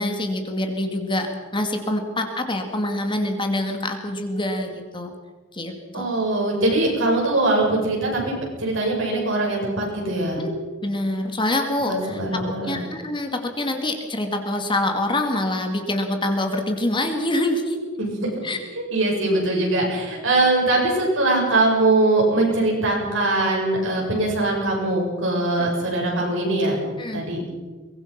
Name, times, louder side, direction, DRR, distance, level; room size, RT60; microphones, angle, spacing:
voice 1, 0.0-5.1 5.5-6.1 10.4-10.5 10.8-17.8 18.4-18.6 25.6-25.7 27.0-27.2, left 1 dB, 25° left, 5 dB, 2.2 m, -25 dB
voice 2, 5.9-8.3 8.6-10.4 11.9-12.9 18.0-18.4 18.7-27.4, right 2 dB, 70° right, -1 dB, 7.8 m, -22 dB
23.0 x 20.5 x 6.0 m, 1.3 s
head